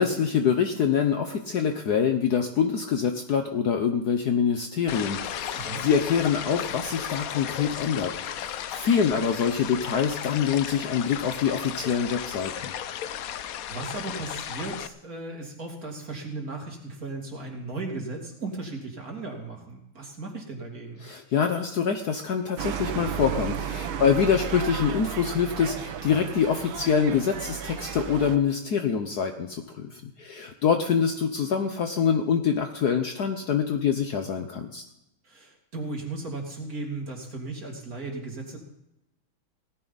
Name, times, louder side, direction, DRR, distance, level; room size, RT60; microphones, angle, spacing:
voice 1, 0.0-12.7 21.0-34.8, left 7 dB, 60° left, 6 dB, 1.2 m, -25 dB
sound 1, 4.9-14.9, left 10 dB, 85° left, 0.7 m, -35 dB
voice 2, 5.5-5.8 13.7-21.0 23.9-24.3 35.2-38.6, right 3 dB, 45° right, 1 dB, 3.0 m, -36 dB
sound 2, 22.6-28.4, right 9 dB, 70° right, 1.7 m, -34 dB
17.5 x 14.0 x 4.1 m, 0.85 s
omnidirectional pair, 2.3 m